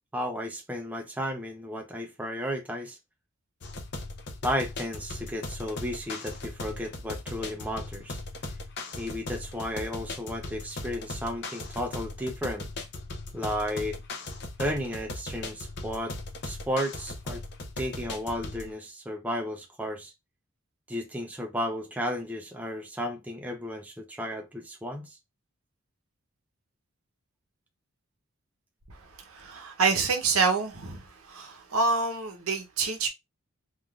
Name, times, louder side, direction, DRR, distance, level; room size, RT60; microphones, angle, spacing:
voice 1, 0.1-3.0 4.4-8.2 9.0-12.7 13.3-14.0 14.6-16.2 16.4-17.4 17.8-20.1 20.9-25.2, equal, 5° right, 0.4 m, -33 dB
sound 1, 3.6-18.7, left 2 dB, 55° left, 0.6 m, -38 dB
voice 2, 29.3-31.0 31.3-33.1, right 4 dB, 90° right, 0.8 m, -27 dB
3.4 x 2.4 x 2.3 m
head